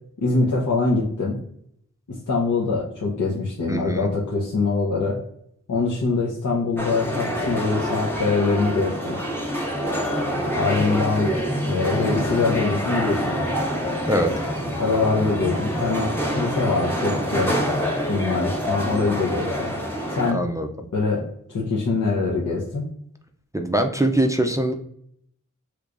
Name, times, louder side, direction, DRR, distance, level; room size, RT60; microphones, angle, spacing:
voice 1, 0.2-1.4 2.1-5.2 5.7-9.2 10.5-11.3 11.6-13.5 14.8-17.5 18.1-19.7 20.1-20.4 20.9-22.8, left 4 dB, 70° left, -5 dB, 0.8 m, -23 dB
voice 2, 3.7-4.1 14.0-14.3 20.3-20.7 23.5-24.7, right 1 dB, 10° right, 4 dB, 0.4 m, -22 dB
sound 1, 6.8-20.3, equal, 5° left, 0.8 m, -26 dB
3.3 x 3.0 x 2.5 m, 0.70 s
wide cardioid pair, 45°, 31 cm